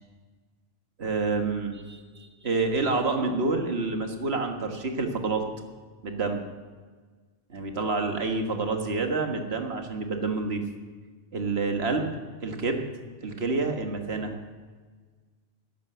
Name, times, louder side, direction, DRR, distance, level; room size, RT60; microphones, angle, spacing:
voice 1, 1.0-5.5 6.0-6.5 7.5-10.6 11.3-12.1 12.4-12.9 13.2-14.3, right 3 dB, 65° right, 4 dB, 1.8 m, -28 dB
13.0 x 10.0 x 7.9 m, 1.5 s
omnidirectional pair, 1.1 m